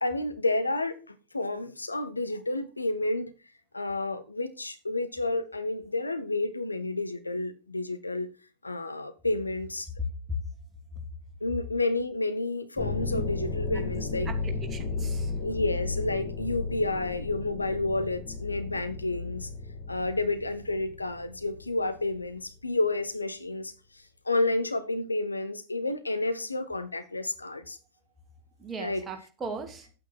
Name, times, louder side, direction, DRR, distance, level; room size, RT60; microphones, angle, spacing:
voice 1, 0.0-3.3 3.7-8.3 8.6-9.9 11.4-14.3 15.4-19.5 19.9-23.7 24.2-27.8 28.8-29.0, left 2 dB, 80° left, 1.1 m, -30 dB
voice 2, 10.0-10.4 13.1-13.2 13.7-13.8 14.2-15.4 28.6-29.9, equal, 20° right, 2.6 m, -37 dB
sound 1, 12.8-22.2, left 4 dB, 25° left, 3.1 m, -34 dB
9.9 x 8.8 x 4.7 m
figure-of-eight pair, 90°, 0 cm